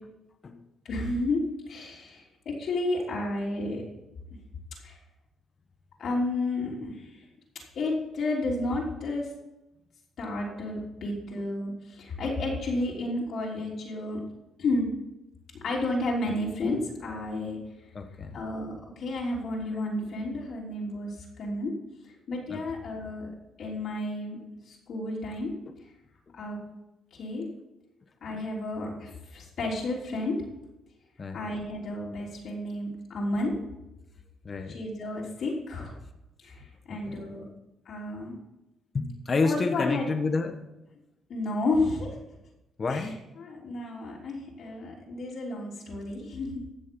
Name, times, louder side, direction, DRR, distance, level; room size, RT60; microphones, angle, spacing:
voice 1, 0.8-3.8 4.8-5.0 6.0-7.2 7.7-9.3 10.2-14.2 14.6-14.9 15.6-17.6 18.3-21.7 22.0-24.4 24.7-25.5 26.3-26.6 27.1-27.5 28.2-30.3 31.3-33.5 34.7-36.0 36.4-37.4 37.8-38.4 39.4-40.1 41.3-42.4 42.9-43.1 43.4-46.6, left 2 dB, 65° left, -4 dB, 3.5 m, -32 dB
voice 2, 17.9-18.4 22.5-22.6 31.2-31.4 34.4-34.8 36.9-37.2 38.9-40.6 42.8-43.2, left 4 dB, 40° left, 6 dB, 1.3 m, -29 dB
15.0 x 6.4 x 5.4 m, 0.94 s
cardioid pair, 90°, 0 cm